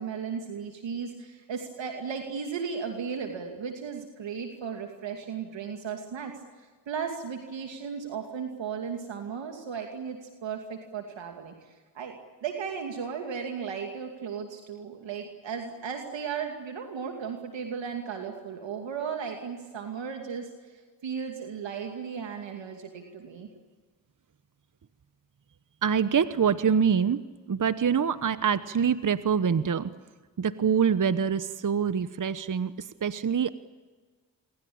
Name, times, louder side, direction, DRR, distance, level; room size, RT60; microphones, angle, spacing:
voice 1, 0.0-6.3 6.9-12.1 12.4-20.7 21.0-23.5, right 6 dB, 80° right, 3 dB, 2.6 m, -35 dB
voice 2, 25.8-27.2 27.5-29.9 30.4-32.7 33.0-33.5, right 7 dB, 45° right, 13 dB, 1.1 m, -25 dB
28.5 x 23.5 x 8.7 m, 1.4 s
supercardioid pair, 40°, 44 cm